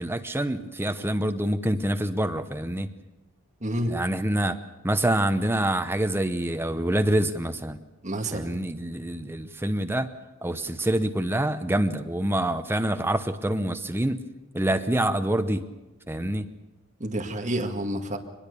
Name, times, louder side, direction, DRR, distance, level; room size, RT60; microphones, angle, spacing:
voice 1, 0.0-2.9 3.9-4.6 4.8-7.8 8.3-10.1 10.4-14.2 14.5-15.7 16.1-16.5, right 1 dB, 10° right, 9 dB, 0.8 m, -26 dB
voice 2, 3.6-4.0 8.0-8.5 17.0-18.2, right 1 dB, 35° right, 2 dB, 2.1 m, -29 dB
23.5 x 21.0 x 6.9 m, 1.1 s
head